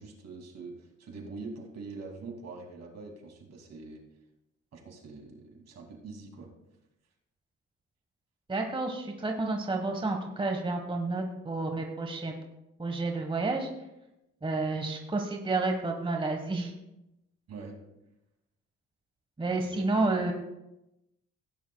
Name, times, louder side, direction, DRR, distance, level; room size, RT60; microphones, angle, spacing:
voice 1, 0.0-4.0 4.7-6.5 17.5-17.8 19.5-20.2, right 3 dB, 60° right, 2 dB, 2.6 m, -44 dB
voice 2, 8.5-12.3 12.8-13.7 14.4-16.7 19.4-20.3, right 3 dB, 15° right, 3 dB, 1.3 m, -30 dB
17.5 x 10.0 x 2.3 m, 0.91 s
cardioid pair, 90°, 30 cm